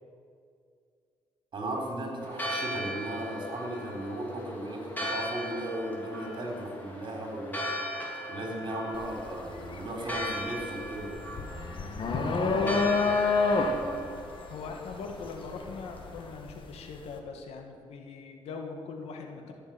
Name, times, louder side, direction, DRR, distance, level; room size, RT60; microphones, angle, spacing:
voice 1, 1.5-7.7 8.3-11.3 12.0-12.9 13.7-14.1, right 1 dB, 50° right, 1 dB, 4.2 m, -36 dB
Church bell, 2.2-16.3, equal, 15° left, 3.5 m, -38 dB
sound 1, 8.9-9.2 9.6-16.6, left 4 dB, 55° left, 1.7 m, -28 dB
voice 2, 12.3-13.0 14.5-19.5, left 4 dB, 85° left, 3 dB, 2.1 m, -41 dB
15.0 x 7.2 x 9.3 m, 2.2 s
cardioid pair, 90°, 10 cm